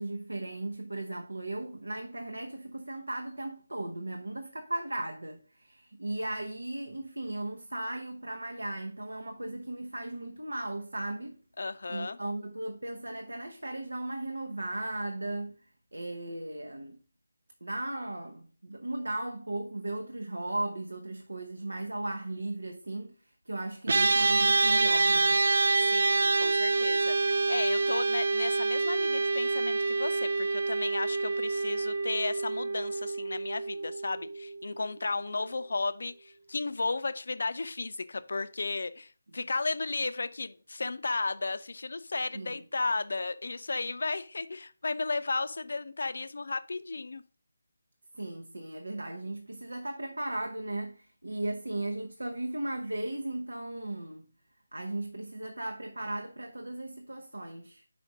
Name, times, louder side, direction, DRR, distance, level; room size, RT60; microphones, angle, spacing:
voice 1, 0.0-11.4 11.9-15.6 15.9-17.0 17.6-23.2 23.5-25.4 39.3-39.4 42.3-42.6 48.1-54.3 54.7-57.8, right 1 dB, 75° right, 0.8 m, -36 dB
voice 2, 11.6-12.2 25.7-47.2, left 3 dB, 60° left, 0.5 m, -34 dB
sound 1, 23.9-35.3, right 3 dB, 55° right, 0.4 m, -27 dB
5.1 x 5.0 x 5.0 m
figure-of-eight pair, 155°, 0 cm